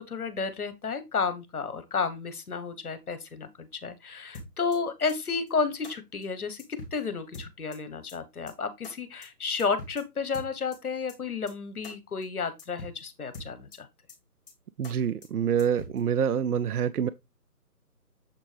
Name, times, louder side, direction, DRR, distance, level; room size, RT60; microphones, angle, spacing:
voice 1, 0.0-13.9, left 5 dB, 65° left, 1.2 m, -32 dB
sound 1, 4.3-4.8 5.1-5.2 5.5-5.6 5.8-5.9 6.2-6.3 6.6-7.0 7.3-7.8 8.1-8.2 8.5-8.6 8.8-8.9 9.2-9.3 9.6-10.0 10.3-10.8 11.1-11.2 11.5-11.6 11.8-11.9 12.2-12.3 12.6-13.0 13.3-13.8 14.1-14.2 14.5-14.6 14.8-14.9 15.2-15.3 15.6-16.0, left 2 dB, 35° left, 2.4 m, -43 dB
voice 2, 14.8-17.1, right 8 dB, 70° right, 0.5 m, -26 dB
7.4 x 4.4 x 3.3 m
figure-of-eight pair, 155°, 47 cm